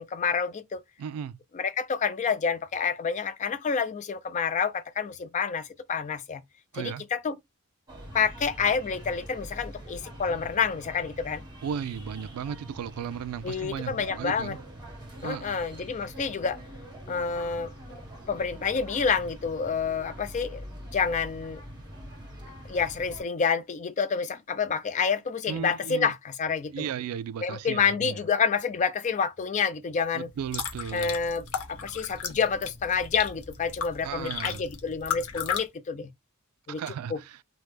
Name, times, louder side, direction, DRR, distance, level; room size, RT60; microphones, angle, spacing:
voice 1, 0.0-0.8 1.5-6.4 6.7-7.4 8.1-11.4 13.4-14.5 15.2-16.6 17.1-17.7 18.3-20.6 20.9-21.6 22.7-26.9 27.4-30.3 30.9-36.1 36.7-36.8 37.1-37.2, left 6 dB, 35° left, 0.3 m, -28 dB
voice 2, 1.0-1.4 6.7-7.0 11.6-14.6 15.2-15.6 25.5-26.1 26.7-28.1 30.1-31.1 34.0-34.6 36.7-37.4, right 8 dB, 75° right, 0.3 m, -35 dB
sound 1, 7.9-23.2, equal, 20° right, 1.1 m, -44 dB
sound 2, 30.3-35.6, left 7 dB, 75° left, 0.6 m, -35 dB
3.1 x 2.0 x 3.3 m
head